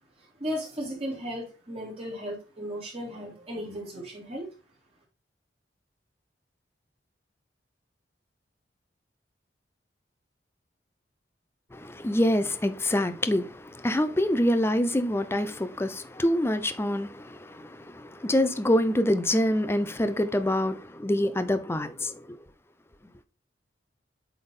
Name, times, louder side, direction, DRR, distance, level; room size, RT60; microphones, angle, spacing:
voice 1, 0.4-4.5, equal, 35° right, 2.5 m, -35 dB
voice 2, 11.7-22.4, left 1 dB, 15° left, 0.5 m, -26 dB
7.9 x 3.5 x 3.7 m
head